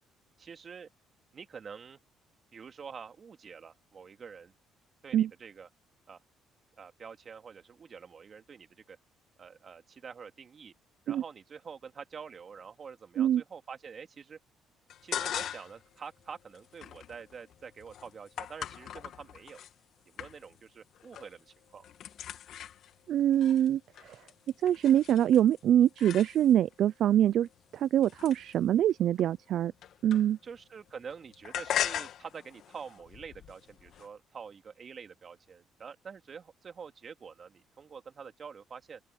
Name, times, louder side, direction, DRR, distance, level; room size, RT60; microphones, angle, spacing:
voice 1, 0.4-0.9 1.3-2.0 2.5-4.5 5.0-5.7 6.1-6.2 6.8-9.0 9.4-10.7 11.1-14.4 15.0-19.6 20.1-21.9 30.4-39.0, right 6 dB, 45° right, 2.7 m, -47 dB
sound 1, 14.9-15.9 16.2-19.7 20.2-20.7 20.9-21.4 21.7-26.7 27.4-30.6 30.9-34.1, left 10 dB, 65° left, 2.0 m, -40 dB
voice 2, 23.1-24.2 24.6-27.5 27.7-29.7 30.0-30.4, right 10 dB, 65° right, 0.4 m, -24 dB
open air
supercardioid pair, 85°, 0 cm